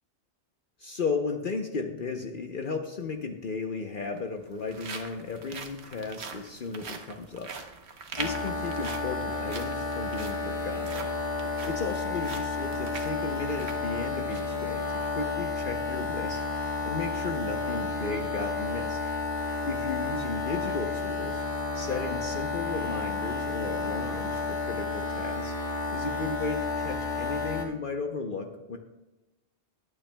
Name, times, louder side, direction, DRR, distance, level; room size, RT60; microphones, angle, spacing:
voice 1, 0.8-7.5 8.2-11.1 11.6-16.4 16.8-19.0 19.6-21.4 21.7-25.5 25.9-28.8, left 4 dB, 55° left, 4 dB, 0.9 m, -35 dB
sound 1, 3.0-3.1 4.0-14.6 15.0-15.1 15.6-15.8, right 5 dB, 70° right, 1.2 m, -43 dB
sound 2, 8.2-27.6, left 3 dB, 35° left, 1.7 m, -31 dB
20.5 x 8.9 x 2.2 m, 1.0 s
omnidirectional pair, 1.1 m